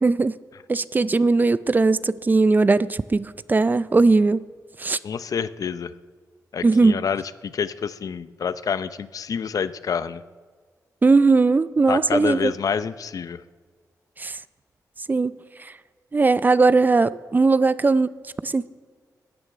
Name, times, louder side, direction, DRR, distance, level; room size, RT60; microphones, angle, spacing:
voice 1, 0.0-0.4 0.7-4.4 4.8-5.0 6.6-7.0 11.0-12.5 14.2-14.4 15.1-15.7 16.1-18.1 18.4-18.7, right 3 dB, 25° right, 16 dB, 0.4 m, -19 dB
voice 2, 5.0-5.9 6.5-10.2 11.9-13.4, left 6 dB, 60° left, 14 dB, 0.6 m, -28 dB
13.5 x 9.8 x 9.1 m, 1.5 s
cardioid pair, 100°, 7 cm